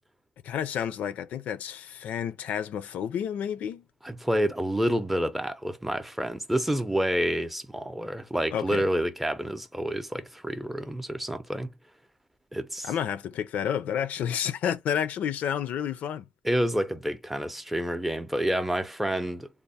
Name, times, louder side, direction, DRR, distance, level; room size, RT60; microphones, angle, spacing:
voice 1, 0.4-3.8 8.5-8.8 12.8-16.2, left 9 dB, 85° left, 0.4 m, -30 dB
voice 2, 4.0-11.7 12.5-12.9 16.4-19.5, equal, 5° right, 0.5 m, -28 dB
3.4 x 2.0 x 4.0 m
cardioid pair, 115°, 2 cm